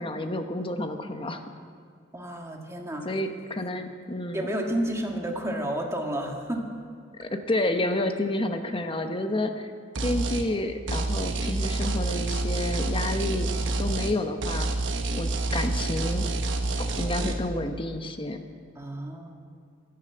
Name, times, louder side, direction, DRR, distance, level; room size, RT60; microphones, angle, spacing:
voice 1, 0.0-1.4 3.0-4.5 7.2-9.7 10.0-13.5 13.8-14.7 15.1-16.2 16.8-18.4, left 1 dB, 25° left, 7 dB, 1.0 m, -30 dB
voice 2, 2.1-3.2 4.3-6.7 18.7-19.3, right 1 dB, 15° right, 1 dB, 1.7 m, -31 dB
sound 1, 10.0-10.5 10.9-14.2 14.4-17.3, right 2 dB, 65° right, 1.1 m, -28 dB
12.0 x 10.5 x 7.8 m, 2.3 s
head